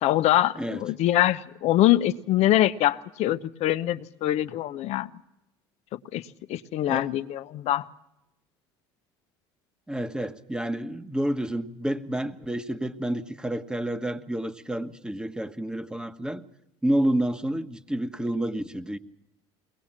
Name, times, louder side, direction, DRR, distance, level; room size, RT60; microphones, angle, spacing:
voice 1, 0.0-5.1 6.1-6.2 6.5-7.8, left 14 dB, 60° left, 13 dB, 0.9 m, -23 dB
voice 2, 9.9-16.4 16.8-19.0, right 1 dB, 5° right, 9 dB, 1.3 m, -29 dB
22.5 x 19.0 x 7.5 m, 0.86 s
supercardioid pair, 85°, 13 cm